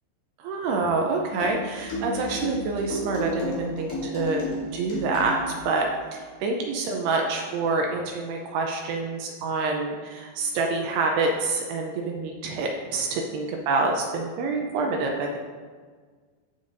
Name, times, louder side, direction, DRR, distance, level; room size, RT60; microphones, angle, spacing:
voice 1, 0.4-4.5 4.7-5.4 5.7-5.9 6.1-15.4, right 3 dB, 80° right, 1 dB, 2.5 m, -27 dB
sound 1, 1.4-5.7, left 1 dB, 60° left, 3.9 m, -32 dB
15.0 x 6.9 x 2.6 m, 1.5 s
omnidirectional pair, 5.2 m